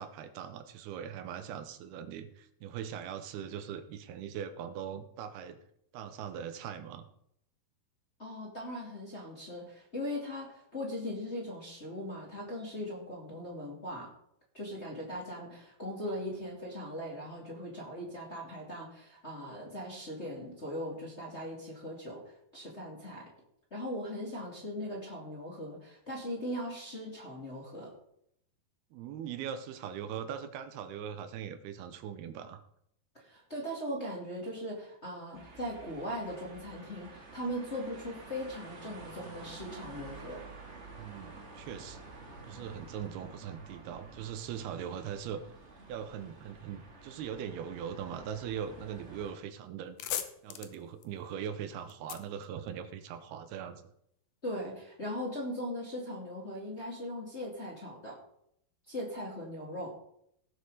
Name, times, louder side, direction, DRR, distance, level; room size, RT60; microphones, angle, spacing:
voice 1, 0.0-5.6 5.9-7.1 28.9-32.6 40.9-42.0 42.4-45.4 45.9-50.0 50.4-53.8, right 8 dB, 85° right, 9 dB, 2.9 m, -40 dB
voice 2, 8.2-14.1 14.5-23.2 23.7-27.9 33.1-40.4 54.4-58.2 58.9-59.9, equal, 25° left, -3 dB, 1.8 m, -39 dB
sound 1, 35.3-49.3, right 3 dB, 50° right, 0.8 m, -50 dB
sound 2, 49.2-49.4 49.7-53.3, left 11 dB, 75° left, 1.9 m, -41 dB
17.0 x 6.6 x 4.9 m, 0.72 s
omnidirectional pair, 4.5 m